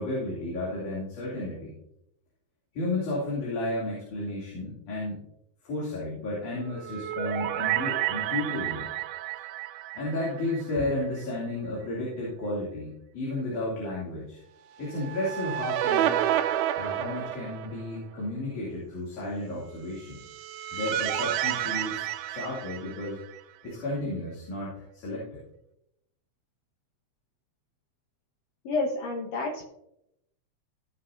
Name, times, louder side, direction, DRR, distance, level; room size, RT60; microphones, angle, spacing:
voice 1, 0.0-1.8 2.7-5.2 5.6-8.9 9.9-14.4 14.8-16.2 16.8-20.2 20.7-23.2 23.6-25.4, left 2 dB, 90° left, -6 dB, 4.3 m, -33 dB
sound 1, 6.6-10.9 11.2-11.3 14.8-18.0 20.0-23.4, right 12 dB, 90° right, 2.1 m, -30 dB
voice 2, 28.7-29.6, left 3 dB, 65° left, 0 dB, 2.2 m, -29 dB
16.5 x 6.8 x 2.7 m, 0.81 s
omnidirectional pair, 3.4 m